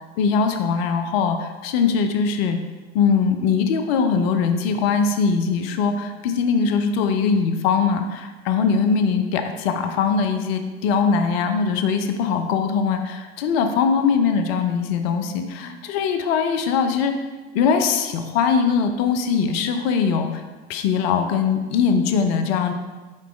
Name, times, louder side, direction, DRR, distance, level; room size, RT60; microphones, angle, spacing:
voice 1, 0.2-2.6 2.9-17.1 17.5-20.4 20.7-22.7, left 6 dB, 65° left, 6 dB, 0.7 m, -21 dB
6.4 x 4.1 x 3.7 m, 1.3 s
hypercardioid pair, 80°, 32 cm